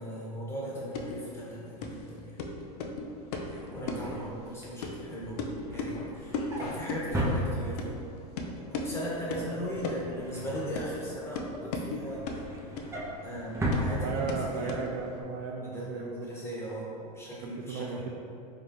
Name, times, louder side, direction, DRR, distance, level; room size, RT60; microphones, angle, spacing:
voice 1, 0.0-2.2 3.7-8.1 8.7-12.2 13.2-14.8 15.6-18.0, equal, 10° left, -6 dB, 1.1 m, -38 dB
sound 1, 0.7-15.2, left 3 dB, 70° left, 0.5 m, -38 dB
Drawer open or close, 3.2-8.1 8.5-8.8 9.0-11.3 11.7-14.7 15.0-15.2 15.5-15.6, equal, 15° right, 0.7 m, -36 dB
voice 2, 3.8-4.4 9.4-10.0 14.0-16.3 17.4-18.1, right 5 dB, 50° right, 0 dB, 0.4 m, -36 dB
3.5 x 2.8 x 3.4 m, 2.5 s
hypercardioid pair, 105°, 21 cm